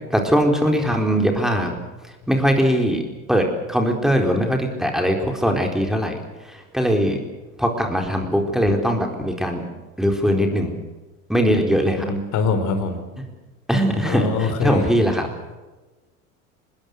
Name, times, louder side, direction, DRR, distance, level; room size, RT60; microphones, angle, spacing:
voice 1, 0.1-1.7 2.3-3.0 3.3-6.2 6.5-7.2 7.6-9.6 10.0-10.7 11.3-12.0 13.7-15.3, equal, ahead, 3 dB, 4.2 m, -20 dB
voice 2, 12.1-13.0 14.1-14.9, left 4 dB, 45° left, 8 dB, 4.7 m, -23 dB
25.5 x 21.0 x 6.6 m, 1.2 s
figure-of-eight pair, 80°, 42 cm